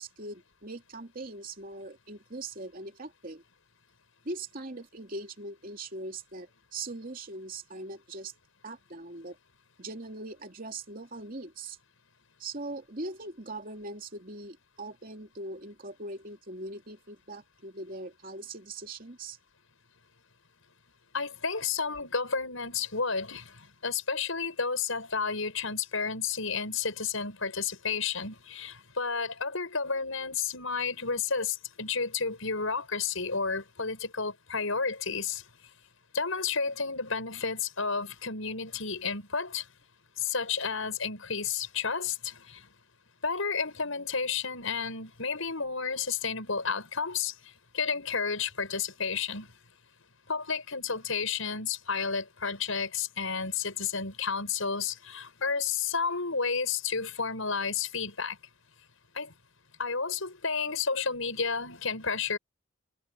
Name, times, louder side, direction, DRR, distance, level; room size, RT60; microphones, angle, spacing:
voice 1, 0.0-3.4 4.2-8.3 8.6-9.4 9.8-11.8 12.4-19.4, right 2 dB, 45° right, 2.9 m, -41 dB
voice 2, 21.1-35.4 36.1-39.7 40.2-42.6 43.2-47.3 47.7-49.5 50.3-58.4 59.1-59.3 59.8-62.4, left 5 dB, 85° left, 6.3 m, -31 dB
head